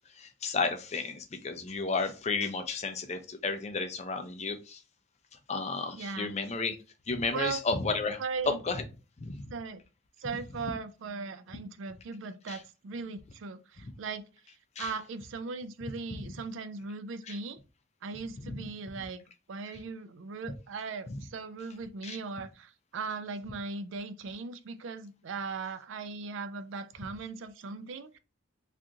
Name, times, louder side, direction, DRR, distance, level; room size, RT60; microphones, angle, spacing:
voice 1, 0.1-4.8 5.5-6.8 7.1-8.8 9.2-9.5 12.5-12.6 13.8-13.9 14.8-14.9 16.2-16.3 17.3-17.4 18.5-18.6 18.9-19.0 21.1-21.2 22.0-22.2, left 4 dB, 35° left, 0.4 m, -33 dB
voice 2, 6.0-6.3 7.3-7.6 8.2-8.6 9.5-9.8 10.2-14.3 14.8-17.6 18.0-28.2, right 4 dB, 70° right, 0.4 m, -38 dB
2.7 x 2.5 x 3.6 m
head